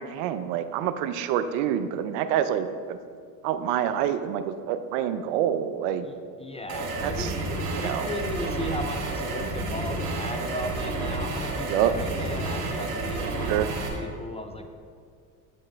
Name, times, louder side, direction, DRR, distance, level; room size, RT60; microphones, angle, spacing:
voice 1, 0.0-3.0 3.4-6.1 7.0-7.3 7.7-8.1 11.7-11.9 13.5-13.7, right 10 dB, 70° right, 11 dB, 0.6 m, -27 dB
voice 2, 6.0-7.4 7.8-14.7, left 2 dB, 15° left, 6 dB, 0.4 m, -36 dB
sound 1, 6.7-13.9, right 2 dB, 85° right, 1.6 m, -30 dB
8.6 x 7.3 x 3.3 m, 2.2 s
hypercardioid pair, 80°, 44 cm